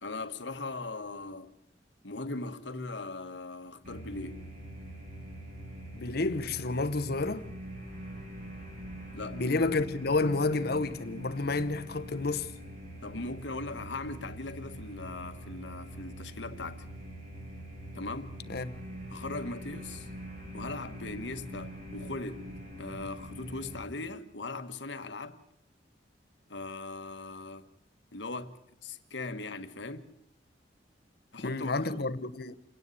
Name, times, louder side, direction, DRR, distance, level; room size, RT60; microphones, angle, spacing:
voice 1, 0.0-1.5 2.0-4.5 9.1-9.4 13.0-16.8 17.9-18.4 19.1-20.1 20.5-22.5 22.8-25.4 26.5-27.7 28.1-30.1 31.3-32.1, left 3 dB, 80° left, 1.4 m, -39 dB
sound 1, 3.8-23.8, equal, 50° right, 4.7 m, -44 dB
voice 2, 5.9-7.4 9.3-12.5 18.5-18.8 31.4-32.6, left 3 dB, 60° left, 1.0 m, -30 dB
28.0 x 10.0 x 9.5 m
head